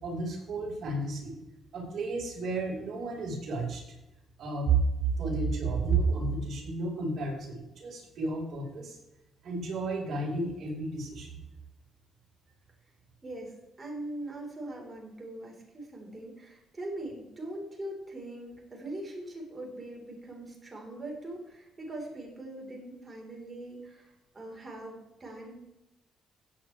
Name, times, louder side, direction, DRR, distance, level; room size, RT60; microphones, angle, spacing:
voice 1, 0.0-1.4 1.7-3.8 4.4-9.0 9.4-11.4, right 3 dB, 65° right, -2 dB, 5.4 m, -31 dB
voice 2, 13.2-13.5 13.8-25.6, right 1 dB, 25° right, -1 dB, 4.7 m, -41 dB
16.0 x 9.0 x 3.6 m, 0.92 s
cardioid pair, 90°, 0 cm